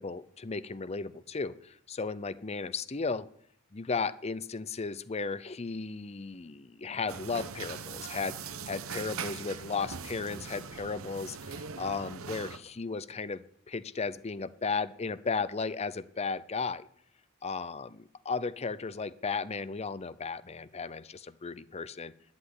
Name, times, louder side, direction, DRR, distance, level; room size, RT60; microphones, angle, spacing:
voice 1, 0.0-3.3 3.7-16.9 17.4-17.9 18.2-22.1, left 4 dB, 30° left, 17 dB, 0.6 m, -35 dB
sound 1, 7.1-12.6, right 5 dB, 85° right, 1.0 m, -41 dB
11.5 x 10.5 x 9.6 m, 0.67 s
head